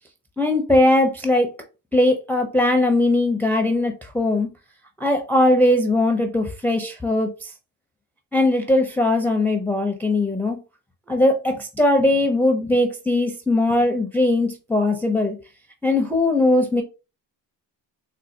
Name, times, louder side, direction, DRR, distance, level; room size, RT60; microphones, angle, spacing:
voice 1, 0.4-1.5 1.9-4.5 5.0-7.5 8.3-10.6 11.1-15.3 15.8-16.8, left 1 dB, 5° left, 0.5 m, -20 dB
4.2 x 2.2 x 2.6 m
cardioid pair, 85°, 44 cm